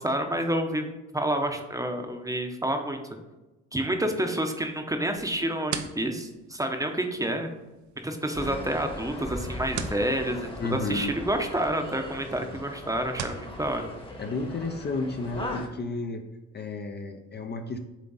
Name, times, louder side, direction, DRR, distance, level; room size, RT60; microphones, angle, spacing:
voice 1, 0.0-3.0 3.7-7.5 8.0-13.9, right 1 dB, 10° right, 5 dB, 0.8 m, -29 dB
sound 1, 5.1-13.5, right 7 dB, 70° right, 0.7 m, -42 dB
sound 2, 8.3-15.7, left 1 dB, 15° left, 1.1 m, -39 dB
voice 2, 10.6-11.1 12.5-12.6 14.2-16.2 16.5-17.8, left 3 dB, 35° left, 5 dB, 0.6 m, -32 dB
7.2 x 3.8 x 4.0 m, 1.0 s
cardioid pair, 90°, 30 cm